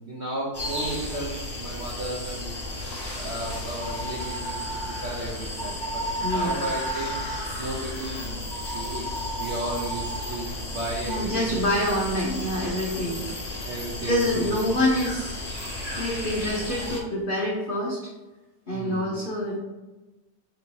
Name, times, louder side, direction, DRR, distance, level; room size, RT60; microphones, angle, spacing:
voice 1, 0.0-9.0 9.4-11.7 13.6-14.6 18.7-19.2, right 1 dB, 65° right, -5 dB, 0.6 m, -35 dB
sound 1, 0.5-17.0, left 1 dB, 25° left, 0.5 m, -33 dB
voice 2, 6.2-6.6 11.1-13.3 14.0-15.4 16.0-18.0 18.7-19.6, left 1 dB, 80° left, -4 dB, 0.4 m, -26 dB
3.5 x 2.7 x 4.5 m, 1.1 s
omnidirectional pair, 2.0 m